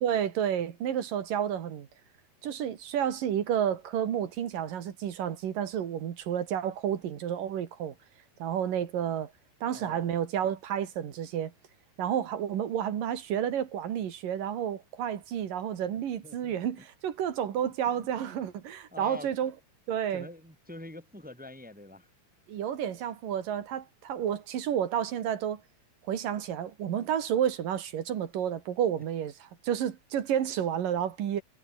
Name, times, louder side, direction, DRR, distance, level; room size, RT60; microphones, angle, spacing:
voice 1, 0.0-1.9 2.4-8.0 8.4-9.3 9.6-11.5 12.0-19.5 19.9-20.3 22.5-25.6 26.1-31.4, right 9 dB, 70° right, 3.6 m, -30 dB
voice 2, 9.7-10.2 16.2-16.9 17.8-18.4 18.9-19.5 20.1-22.1, left 2 dB, 5° right, 1.1 m, -46 dB
omnidirectional pair, 4.2 m